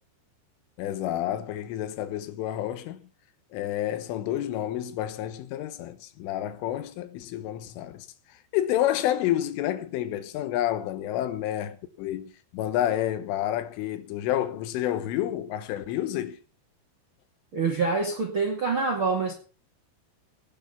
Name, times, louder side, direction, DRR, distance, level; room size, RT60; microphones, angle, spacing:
voice 1, 0.8-3.1 3.5-8.1 8.5-16.4, left 12 dB, 85° left, 3.7 m, -29 dB
voice 2, 17.5-19.3, right 4 dB, 40° right, 2.2 m, -26 dB
18.5 x 7.6 x 6.8 m
omnidirectional pair, 5.6 m